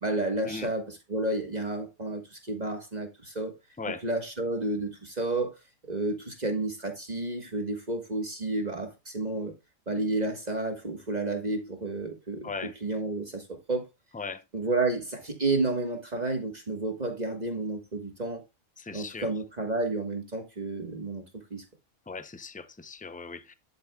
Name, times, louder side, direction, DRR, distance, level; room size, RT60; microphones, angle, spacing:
voice 1, 0.0-3.5 4.0-5.6 5.9-9.5 9.9-12.5 12.8-13.9 14.5-18.4 18.9-21.6, right 2 dB, 35° right, 1.6 m, -31 dB
voice 2, 12.4-12.7 14.1-14.4 18.8-19.3 22.1-23.5, left 4 dB, 15° left, 0.3 m, -38 dB
11.5 x 7.7 x 2.3 m
omnidirectional pair, 1.3 m